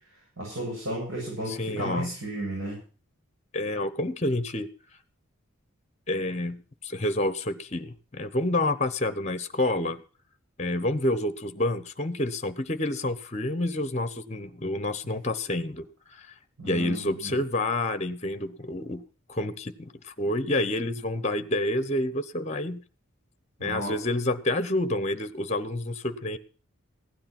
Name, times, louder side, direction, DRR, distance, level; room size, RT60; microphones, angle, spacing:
voice 1, 0.4-2.8 16.6-17.3 23.6-24.0, right 1 dB, 65° right, 7.7 m, -34 dB
voice 2, 1.5-2.1 3.5-4.7 6.1-10.0 10.6-16.3 16.6-19.0 19.3-22.8 23.6-26.4, left 1 dB, 30° left, 0.9 m, -28 dB
16.0 x 9.8 x 6.0 m
head